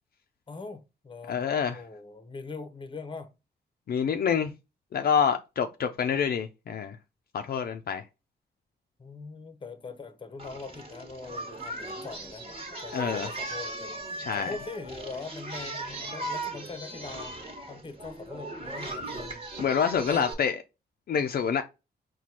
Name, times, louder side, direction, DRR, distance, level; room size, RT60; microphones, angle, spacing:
voice 1, 0.5-3.3 9.0-12.5 12.8-13.9 14.4-17.3 17.7-19.4 20.0-20.3, left 4 dB, 30° left, 0.7 m, -42 dB
voice 2, 1.3-1.8 3.9-4.5 4.9-7.0 7.3-8.0 12.9-13.3 14.2-14.5 19.6-20.6 21.1-21.6, left 7 dB, 60° left, 0.4 m, -27 dB
Singing, 10.4-20.3, right 2 dB, 35° right, 1.4 m, -38 dB
4.2 x 2.3 x 4.6 m
cardioid pair, 95°, 18 cm